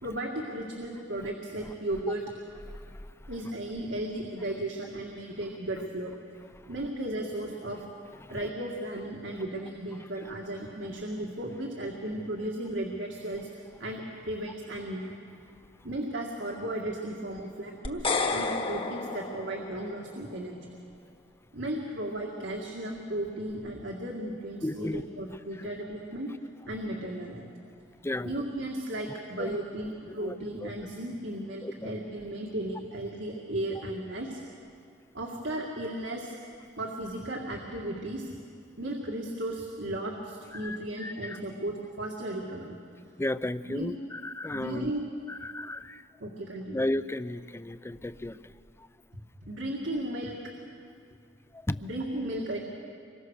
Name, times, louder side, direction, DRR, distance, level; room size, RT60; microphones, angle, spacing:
voice 1, 0.0-2.2 3.3-6.1 6.7-7.8 8.3-13.5 13.8-15.1 15.8-20.6 21.5-26.3 26.7-27.5 28.2-34.4 35.1-36.3 36.8-38.3 38.8-42.7 43.6-43.9 44.4-45.1 46.2-46.8 49.5-50.3 51.8-52.6, right 1 dB, 80° right, -1 dB, 2.2 m, -35 dB
sound 1, 17.8-20.1, left 3 dB, 30° left, 1.3 m, -31 dB
voice 2, 24.6-25.0 28.0-28.3 29.4-29.6 30.2-30.4 30.6-30.7 31.6-31.9 40.5-41.4 43.2-44.9 45.3-46.0 46.7-48.5 51.5-51.8, left 1 dB, 15° left, 14 dB, 0.5 m, -34 dB
25.5 x 22.5 x 6.5 m, 2.3 s
head